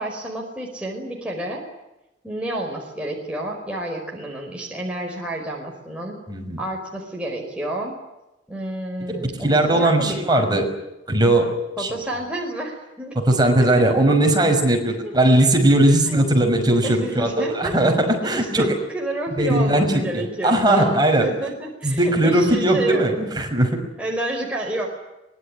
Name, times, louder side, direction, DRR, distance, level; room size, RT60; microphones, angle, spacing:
voice 1, 0.0-1.6 2.2-6.2 6.6-7.9 8.5-10.6 11.8-13.2 15.0-15.1 16.0-16.2 16.8-17.7 18.2-23.3 24.0-24.9, right 1 dB, 5° right, -2 dB, 5.1 m, -30 dB
voice 2, 6.3-6.6 9.1-10.6 11.1-11.9 13.1-18.7 19.4-21.3 21.8-23.8, right 1 dB, 20° right, 3 dB, 5.8 m, -19 dB
24.5 x 21.5 x 10.0 m, 0.96 s
head